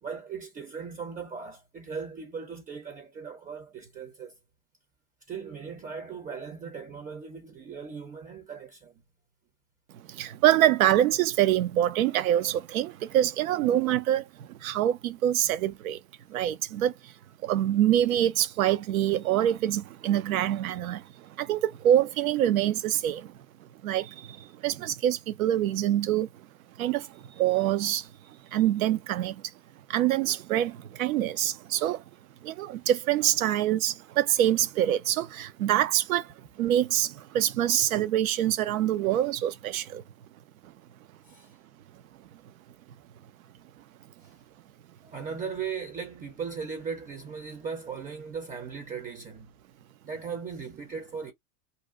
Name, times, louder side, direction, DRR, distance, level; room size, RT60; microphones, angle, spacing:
voice 1, 0.0-4.3 5.3-9.0 41.2-41.5 44.2-44.4 45.0-49.5 50.0-51.3, right 6 dB, 20° right, 0.6 m, -38 dB
voice 2, 9.9-16.0 16.3-17.1 17.4-23.3 23.8-26.3 26.8-28.1 28.5-29.4 29.9-32.0 32.4-40.0, right 12 dB, 65° right, 0.6 m, -25 dB
2.7 x 2.2 x 3.5 m
figure-of-eight pair, 90°, 46 cm